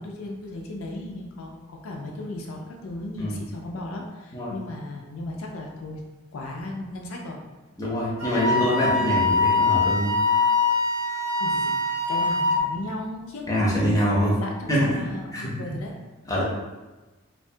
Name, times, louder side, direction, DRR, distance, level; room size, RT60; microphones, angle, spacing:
voice 1, 0.0-6.0 6.3-7.4 11.4-11.8 12.1-13.5 14.2-15.9, left 2 dB, 70° left, 0 dB, 0.4 m, -35 dB
voice 2, 7.8-10.2 13.5-14.3 14.7-15.0 15.3-15.7 16.3-16.4, equal, 15° left, -5 dB, 0.6 m, -24 dB
Wind instrument woodwind instrument, 8.2-12.7, left 3 dB, 85° right, 0.9 m, -23 dB
2.4 x 2.2 x 2.7 m, 1.1 s
head